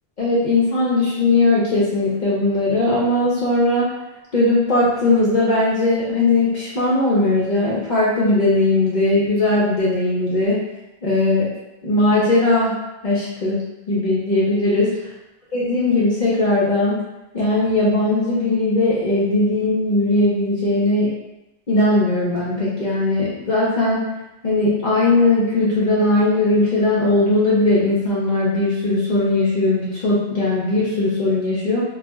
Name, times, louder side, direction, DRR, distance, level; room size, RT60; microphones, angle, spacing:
voice 1, 0.2-3.9 4.3-10.6 11.0-11.5 11.8-12.8 13.0-14.9 15.5-17.0 17.3-21.1 21.7-24.1 24.4-31.8, left 2 dB, 50° left, -7 dB, 0.7 m, -19 dB
2.4 x 2.0 x 3.4 m, 1.0 s
omnidirectional pair, 1.1 m